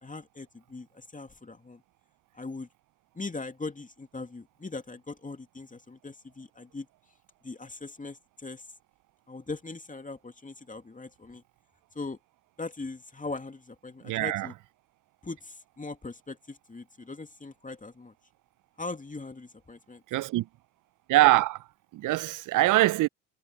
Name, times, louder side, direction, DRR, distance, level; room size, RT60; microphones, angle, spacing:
voice 1, 0.0-1.8 2.3-2.7 3.1-6.9 7.4-8.7 9.3-11.4 11.9-12.2 12.6-14.5 15.2-18.1 18.8-20.0, left 3 dB, 20° left, 2.5 m, -40 dB
voice 2, 14.0-14.5 20.1-20.5 21.1-21.6 21.9-23.1, right 17 dB, 60° right, 0.7 m, -23 dB
hypercardioid pair, 50°, 36 cm